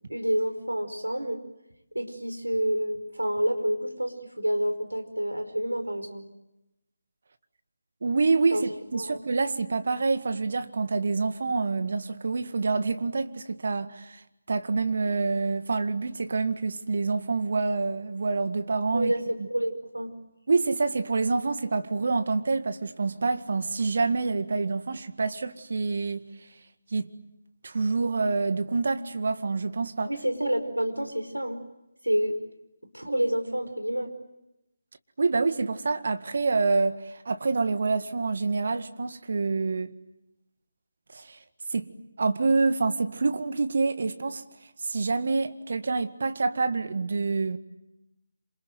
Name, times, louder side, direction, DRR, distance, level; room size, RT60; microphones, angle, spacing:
voice 1, 0.1-1.4 1.9-6.2 8.5-8.6 8.9-9.2 18.9-20.1 30.1-31.6 32.0-32.4 32.9-34.1, equal, 85° right, 5.1 m, -28 dB
voice 2, 8.0-8.6 8.9-14.2 14.5-19.1 19.4-19.5 20.5-26.3 26.9-27.1 27.6-30.1 35.2-39.9 41.1-41.4 41.7-41.9 42.2-44.4 44.8-47.6, right 4 dB, 50° right, 1.9 m, -27 dB
28.0 x 27.0 x 7.8 m
figure-of-eight pair, 150°, 0 cm